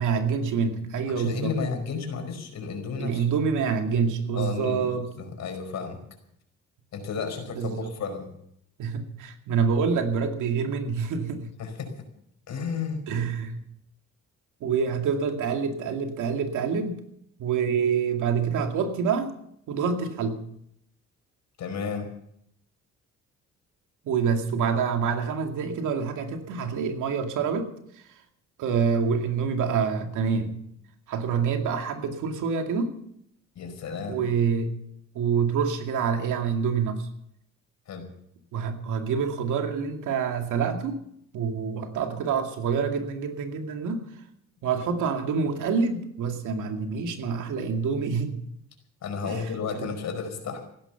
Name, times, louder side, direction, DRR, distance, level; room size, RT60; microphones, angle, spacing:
voice 1, 0.0-1.6 3.0-5.1 7.5-7.9 8.8-11.5 13.1-13.6 14.6-17.0 17.4-19.3 19.7-20.4 24.0-27.7 28.6-30.6 31.1-33.0 34.1-34.7 35.1-37.1 38.5-41.0 41.3-44.1 44.6-48.4 49.2-49.4 49.8-49.9, right 6 dB, 85° right, 5 dB, 2.3 m, -26 dB
voice 2, 1.1-3.3 4.3-6.0 6.9-8.3 11.6-11.9 12.5-13.0 21.6-22.1 33.5-34.2 37.9-38.1 49.0-50.6, left 5 dB, 65° left, 5 dB, 5.0 m, -32 dB
16.0 x 12.5 x 7.0 m, 0.72 s
cardioid pair, 90°, 30 cm